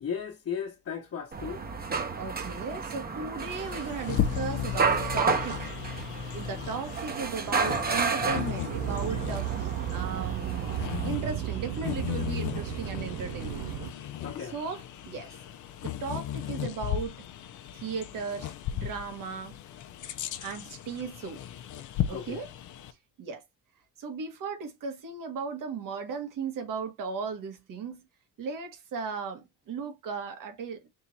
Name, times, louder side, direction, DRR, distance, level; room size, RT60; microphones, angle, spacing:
voice 1, 0.0-1.6 14.2-14.6 22.1-22.4, left 7 dB, 45° left, 1.1 m, -35 dB
sound 1, 1.3-11.1, right 5 dB, 30° right, 0.9 m, -32 dB
voice 2, 2.1-5.7 6.3-13.6 14.4-15.3 15.8-17.1 17.7-19.6 20.4-21.4 22.1-22.5 23.2-23.4 24.0-28.0 28.4-30.8, right 5 dB, 70° right, 1.5 m, -36 dB
Bird vocalization bird call bird song, 3.5-22.9, left 10 dB, 60° left, 0.7 m, -36 dB
sound 2, 8.7-13.9, right 12 dB, 90° right, 0.5 m, -34 dB
3.6 x 2.7 x 4.3 m
cardioid pair, 110°, 33 cm